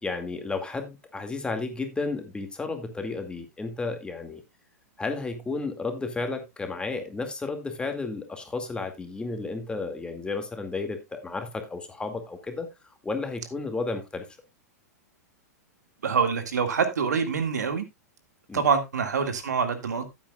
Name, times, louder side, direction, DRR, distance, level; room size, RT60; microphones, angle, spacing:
voice 1, 0.0-4.4 5.0-14.3 18.5-18.6, left 3 dB, 10° left, 2.1 m, -32 dB
voice 2, 16.0-17.9 18.5-20.0, right 6 dB, 85° right, 2.0 m, -25 dB
15.0 x 8.4 x 2.3 m
hypercardioid pair, 120°, 9 cm